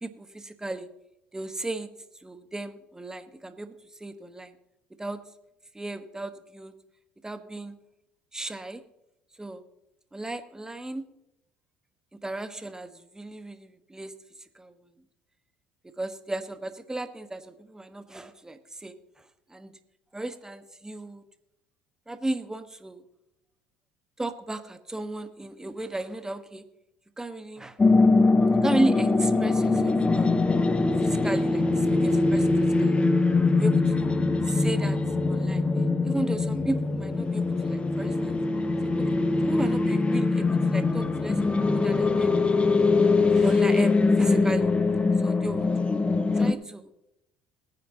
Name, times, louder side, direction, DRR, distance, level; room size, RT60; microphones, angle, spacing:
voice 1, 0.0-0.9 1.3-1.9 2.2-3.7 4.0-4.5 5.0-5.2 5.7-6.7 7.2-7.8 8.3-8.8 9.4-9.6 10.1-11.1 12.2-14.1 14.5-14.9 16.0-18.9 19.5-19.7 20.1-21.2 22.1-23.0 24.2-26.6 27.2-27.8 28.6-30.3 31.0-32.5 32.8-33.0 33.5-34.1 34.4-35.0 35.3-35.6 36.0-38.4 39.0-39.2 39.4-41.4 41.7-42.3 43.3-44.7 45.2-45.7 46.3-46.9, right 2 dB, 10° right, 9 dB, 1.4 m, -34 dB
sound 1, 27.8-46.5, left 3 dB, 20° left, 1.1 m, -22 dB
20.5 x 9.4 x 2.9 m, 0.86 s
hypercardioid pair, 70°, 5 cm